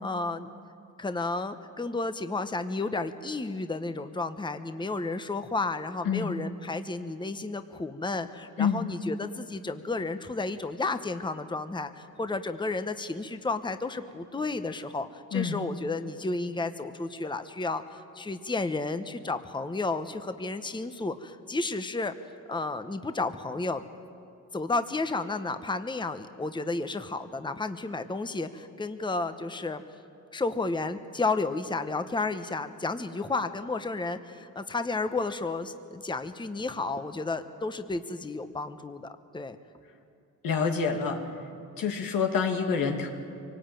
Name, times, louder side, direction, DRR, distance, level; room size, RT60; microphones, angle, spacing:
voice 1, 0.0-0.5 1.0-22.1 22.5-23.8 24.5-29.8 30.3-39.6, left 3 dB, 15° left, 9 dB, 1.0 m, -32 dB
voice 2, 8.6-8.9 15.3-15.6 40.4-41.3 41.8-43.1, left 6 dB, 90° left, 3 dB, 2.5 m, -27 dB
25.0 x 19.0 x 9.1 m, 2.5 s
cardioid pair, 100°, 33 cm